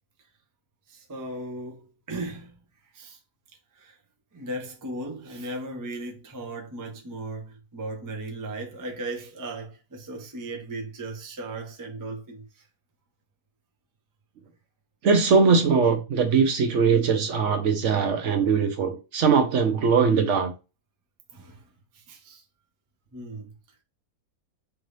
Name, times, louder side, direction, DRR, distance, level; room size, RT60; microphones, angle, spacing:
voice 1, 0.9-3.2 3.7-4.0 4.3-12.7 21.3-22.4 23.1-23.5, right 2 dB, 30° right, 0.3 m, -37 dB
voice 2, 15.0-20.5, right 5 dB, 60° right, 0.9 m, -21 dB
4.5 x 2.6 x 3.2 m
omnidirectional pair, 1.6 m